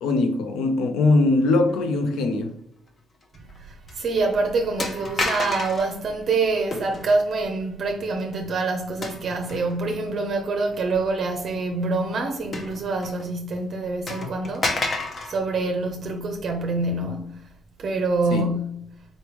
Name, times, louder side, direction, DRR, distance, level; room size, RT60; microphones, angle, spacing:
voice 1, 0.0-2.6 18.3-18.5, left 2 dB, 85° left, 0.6 m, -21 dB
sound 1, 3.3-3.6 3.9-4.0 4.8-5.9 6.7-7.2 9.0-9.8 10.3-10.4 12.5-13.3 13.6-13.7 14.1-15.4, left 2 dB, 40° left, 0.7 m, -29 dB
voice 2, 3.3-17.5 17.8-18.9, right 3 dB, 55° right, 0.5 m, -26 dB
4.0 x 3.4 x 3.0 m
cardioid pair, 90°, 0 cm